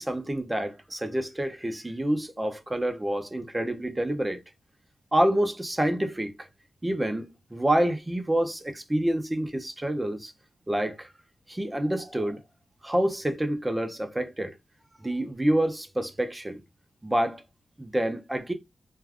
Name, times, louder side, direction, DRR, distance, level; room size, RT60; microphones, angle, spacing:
voice 1, 0.0-4.4 5.1-6.5 6.8-10.3 10.7-11.1 11.5-12.4 12.8-14.5 15.0-16.6 17.0-17.4 17.8-18.5, right 1 dB, 20° right, 0.7 m, -27 dB
2.5 x 2.4 x 3.4 m
cardioid pair, 65°, 0 cm